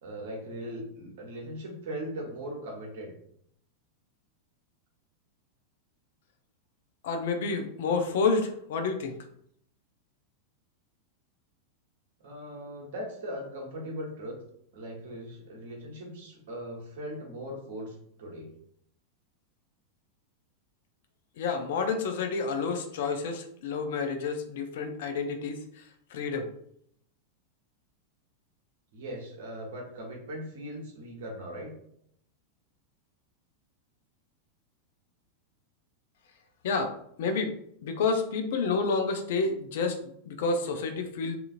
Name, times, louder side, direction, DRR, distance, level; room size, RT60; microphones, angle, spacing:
voice 1, 0.0-3.1 12.2-14.4 14.7-18.5 28.9-31.7, equal, 55° right, 0 dB, 0.9 m, -39 dB
voice 2, 7.0-9.2 21.4-25.8 26.1-26.5 36.6-37.5 37.8-41.4, left 4 dB, 55° left, 6 dB, 0.4 m, -29 dB
2.8 x 2.4 x 2.5 m, 0.69 s
figure-of-eight pair, 90°, 0 cm